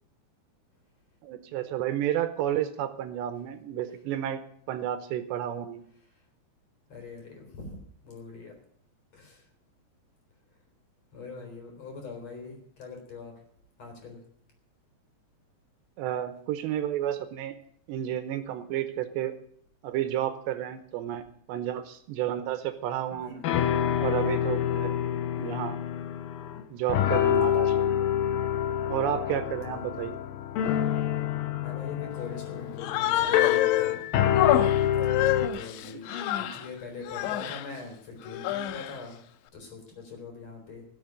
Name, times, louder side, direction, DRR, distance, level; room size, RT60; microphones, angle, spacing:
voice 1, 1.2-5.8 16.0-17.5 17.9-19.3 19.8-21.2 21.5-23.4 24.0-24.9 25.4-25.8 26.7-27.9 28.9-30.2, right 11 dB, 80° right, 11 dB, 3.0 m, -31 dB
voice 2, 6.9-7.8 8.0-8.6 9.1-9.5 11.1-13.4 13.8-14.2 23.2-23.4 25.3-25.7 27.3-27.8 29.6-30.2 31.6-34.0 35.5-39.2 39.5-40.9, left 4 dB, 40° left, 2 dB, 4.5 m, -43 dB
sound 1, 23.1-23.2 23.4-26.6 26.9-35.5, left 10 dB, 70° left, 2.2 m, -27 dB
Human voice, 32.8-34.0 34.3-36.7 37.0-37.7 38.2-39.0, left 14 dB, 90° left, 3.1 m, -28 dB
16.0 x 7.3 x 9.5 m, 0.63 s
omnidirectional pair, 5.1 m